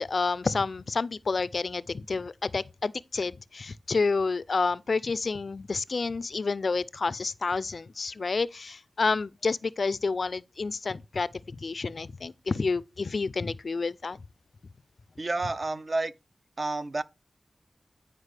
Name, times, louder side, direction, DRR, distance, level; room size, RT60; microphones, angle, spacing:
voice 1, 0.0-14.2, left 4 dB, 60° left, 0.3 m, -29 dB
voice 2, 15.2-16.1 16.6-17.0, right 2 dB, 45° right, 0.4 m, -30 dB
9.7 x 5.0 x 3.3 m
wide cardioid pair, 75°, 0 cm